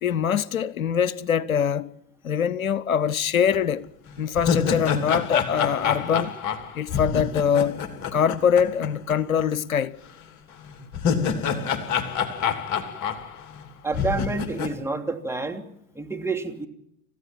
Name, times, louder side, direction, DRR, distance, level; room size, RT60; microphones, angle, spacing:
voice 1, 0.0-1.9 2.2-3.9 4.2-6.4 6.7-7.8 8.1-10.0, left 7 dB, 85° left, 0.8 m, -23 dB
sound 1, 3.5-3.6 4.1-9.1 9.4-9.5 10.7-13.6 13.9-14.7, left 7 dB, 45° left, 3.0 m, -27 dB
voice 2, 13.8-15.6 15.9-16.7, right 3 dB, 5° right, 2.9 m, -28 dB
29.0 x 15.0 x 7.5 m
hypercardioid pair, 85°, 40 cm